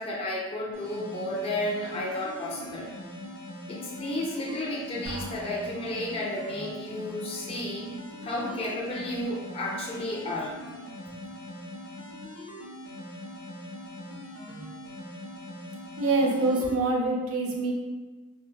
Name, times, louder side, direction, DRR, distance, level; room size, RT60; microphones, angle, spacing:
voice 1, 0.0-2.9 3.7-7.9 8.2-10.5, left 1 dB, 25° left, -4 dB, 0.4 m, -32 dB
sound 1, 0.7-16.7, left 1 dB, 75° left, 0.6 m, -42 dB
Drum, 5.1-6.3, right 1 dB, 30° right, 0.7 m, -42 dB
voice 2, 16.0-17.7, right 2 dB, 75° right, -1 dB, 0.6 m, -25 dB
3.3 x 2.1 x 2.2 m, 1.2 s
head